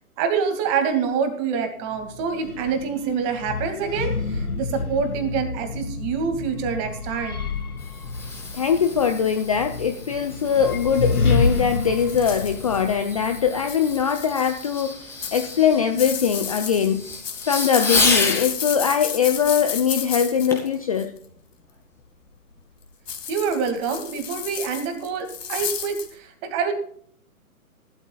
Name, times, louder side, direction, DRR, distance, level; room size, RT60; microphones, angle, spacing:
voice 1, 0.2-7.5 23.3-26.7, right 6 dB, 25° right, 6 dB, 2.2 m, -26 dB
sound 1, 1.9-14.1, left 3 dB, 80° left, 1.7 m, -29 dB
Fireworks, 7.5-18.5 20.5-20.8 21.4-21.5, left 3 dB, 5° left, 2.3 m, -31 dB
voice 2, 8.5-17.0 17.5-21.1, left 7 dB, 25° left, 7 dB, 0.5 m, -22 dB
sound 2, 12.1-12.8 13.6-14.8 15.2-21.2 23.1-26.1, left 7 dB, 60° left, 2.3 m, -32 dB
18.5 x 12.5 x 2.3 m, 0.63 s
figure-of-eight pair, 135°, 43 cm